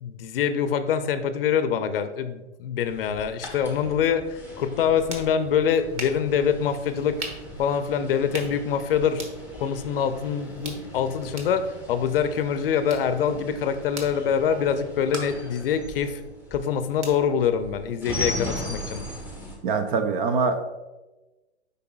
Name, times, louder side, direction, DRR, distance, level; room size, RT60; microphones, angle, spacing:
voice 1, 0.0-7.2 7.6-9.2 9.6-16.2 16.5-19.0, left 7 dB, 55° left, 10 dB, 0.6 m, -25 dB
sound 1, 2.8-19.6, left 1 dB, 5° right, 1.0 m, -39 dB
sound 2, 4.7-18.4, right 2 dB, 80° right, 1.4 m, -43 dB
voice 2, 19.6-20.7, right 4 dB, 45° right, 7 dB, 0.8 m, -24 dB
8.2 x 5.3 x 2.3 m, 1.1 s
hypercardioid pair, 120°, 35 cm